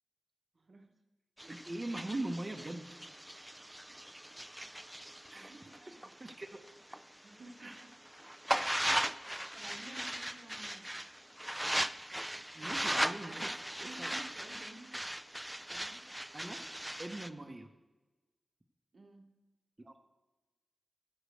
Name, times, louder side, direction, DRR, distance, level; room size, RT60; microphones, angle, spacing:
voice 1, 0.5-0.9 3.9-4.0 5.3-6.0 7.2-7.8 9.5-10.9 12.6-12.8 13.2-13.5 13.8-15.0 15.7-16.1 18.9-19.4, right 2 dB, 60° right, 4 dB, 0.9 m, -53 dB
sound 1, 1.4-7.0 7.4-17.3, right 1 dB, 5° right, 0.4 m, -38 dB
voice 2, 1.5-2.9 3.2-3.3 5.3-5.5 5.9-6.0 6.2-6.6 7.6-7.7 12.5-13.6 14.0-14.1 16.3-16.6 17.0-17.7 19.8-20.0, right 1 dB, 30° right, 3 dB, 0.8 m, -41 dB
14.5 x 5.0 x 6.4 m, 1.2 s
wide cardioid pair, 90°, 0 cm